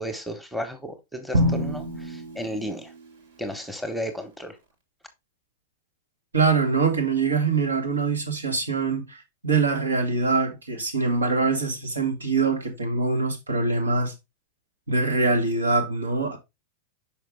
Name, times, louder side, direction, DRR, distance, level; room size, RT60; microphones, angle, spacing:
voice 1, 0.0-2.9 3.4-4.6, equal, ahead, 1.2 m, -33 dB
Drum, 1.3-3.4, equal, 60° right, 1.9 m, -27 dB
voice 2, 6.3-9.2 9.4-14.1 14.9-16.4, right 4 dB, 80° right, 1.8 m, -23 dB
5.8 x 5.4 x 3.5 m
figure-of-eight pair, 95°, 0 cm